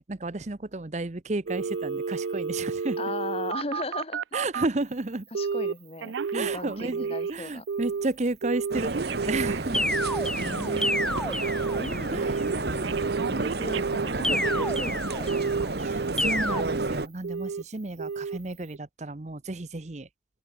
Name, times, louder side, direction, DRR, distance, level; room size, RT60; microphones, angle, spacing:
voice 1, 0.0-3.0 4.3-5.3 6.3-9.8 12.1-12.3 15.8-20.1, right 2 dB, 40° right, 0.8 m, -32 dB
Telephone, 1.5-4.7 5.3-5.7 6.0-7.4 7.7-8.1 8.4-11.8 12.2-12.6 12.8-14.9 15.3-16.1 16.5-16.9 17.2-17.6 18.0-18.4 18.7-18.8, right 5 dB, 85° right, 0.4 m, -31 dB
voice 2, 3.0-4.2 5.3-7.7 10.4-11.2 11.8-15.3, left 2 dB, 35° left, 1.8 m, -37 dB
sound 1, 8.7-17.1, right 2 dB, 60° right, 1.1 m, -31 dB
sound 2, 9.7-12.2 14.2-15.6 16.2-16.6, left 1 dB, 5° left, 0.4 m, -30 dB
open air
head